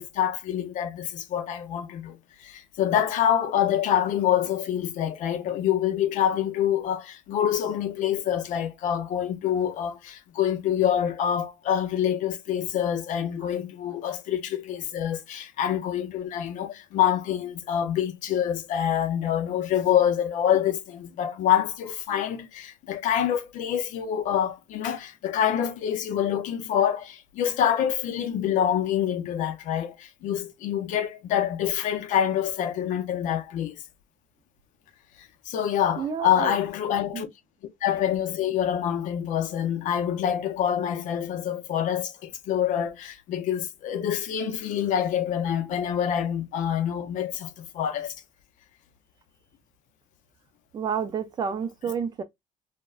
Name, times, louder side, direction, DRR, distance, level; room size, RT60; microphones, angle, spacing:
voice 1, 0.0-33.8 35.5-37.3 37.8-48.1, left 9 dB, 65° left, 0.5 m, -26 dB
voice 2, 36.0-36.5 37.1-37.2 50.7-52.2, right 7 dB, 30° right, 0.3 m, -29 dB
3.2 x 2.1 x 2.3 m
cardioid pair, 165°, 14 cm